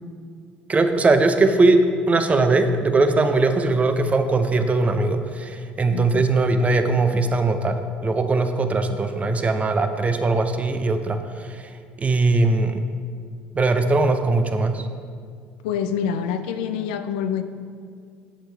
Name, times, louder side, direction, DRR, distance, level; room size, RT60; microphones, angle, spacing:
voice 1, 0.7-11.7 12.0-12.8 13.5-14.9, right 3 dB, 30° right, 8 dB, 0.8 m, -20 dB
voice 2, 5.9-6.2 15.6-17.4, left 8 dB, 80° left, 9 dB, 0.5 m, -26 dB
8.8 x 7.3 x 3.4 m, 2.1 s
hypercardioid pair, 65°, 5 cm